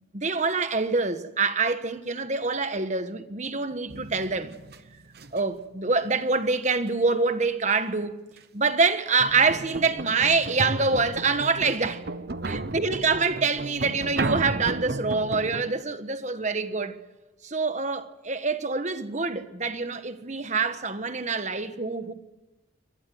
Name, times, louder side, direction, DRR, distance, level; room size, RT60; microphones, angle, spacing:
voice 1, 0.1-4.5 5.3-8.1 8.5-12.0 12.5-17.0 17.4-22.1, right 4 dB, 35° right, 1.3 m, -25 dB
sound 1, 3.9-5.6 8.4-8.5 9.2-15.7, right 2 dB, 55° right, 1.0 m, -34 dB
24.5 x 18.5 x 7.9 m
head